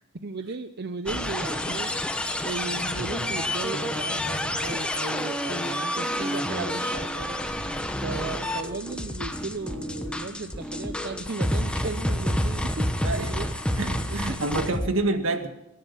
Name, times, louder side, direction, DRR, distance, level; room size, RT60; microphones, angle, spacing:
voice 1, 0.2-7.6 7.9-13.5 14.1-14.6, right 3 dB, 50° right, 9 dB, 0.7 m, -36 dB
sound 1, 1.1-13.6, left 1 dB, 60° left, 1.9 m, -47 dB
sound 2, 1.1-14.9, left 1 dB, 5° left, 1.1 m, -29 dB
voice 2, 13.8-15.5, right 2 dB, 75° right, 6 dB, 1.9 m, -27 dB
23.5 x 10.5 x 5.7 m, 0.88 s
head